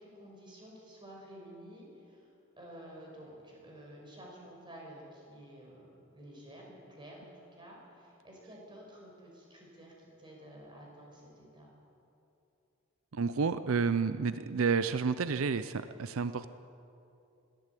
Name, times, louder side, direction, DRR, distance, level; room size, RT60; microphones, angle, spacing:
voice 1, 0.0-11.7, right 1 dB, 25° right, -2 dB, 5.4 m, -51 dB
voice 2, 13.1-16.5, right 5 dB, 85° right, 12 dB, 0.6 m, -30 dB
21.5 x 14.5 x 8.3 m, 2.8 s
head